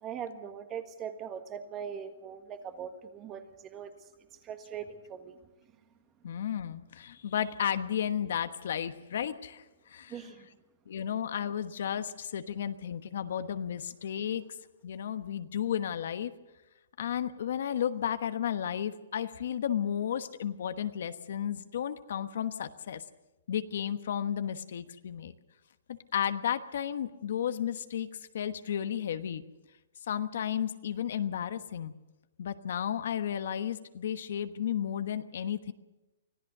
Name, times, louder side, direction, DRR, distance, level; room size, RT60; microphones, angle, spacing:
voice 1, 0.0-3.9 4.4-5.4 10.1-10.5, right 8 dB, 20° right, 9 dB, 1.5 m, -41 dB
voice 2, 6.2-10.2 10.9-14.5 14.8-16.3 17.0-23.0 23.5-25.3 25.9-28.1 28.3-29.4 30.1-31.9 32.4-35.7, left 9 dB, 60° left, 11 dB, 1.2 m, -33 dB
25.0 x 16.0 x 6.7 m, 1.0 s
hypercardioid pair, 160°, 0 cm